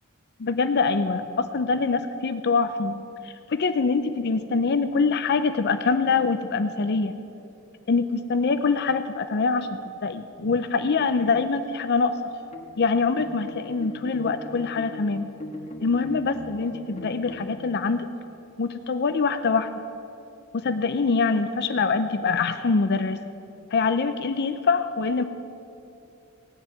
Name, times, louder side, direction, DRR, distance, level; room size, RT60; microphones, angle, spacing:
voice 1, 0.4-7.2 7.9-9.7 10.0-12.2 12.8-15.3 15.8-18.1 18.6-19.7 20.5-23.2 23.7-25.2, left 4 dB, 50° left, 10 dB, 0.5 m, -24 dB
sound 1, 12.5-17.6, left 1 dB, 30° left, 1.5 m, -40 dB
17.5 x 7.3 x 9.6 m, 2.8 s
head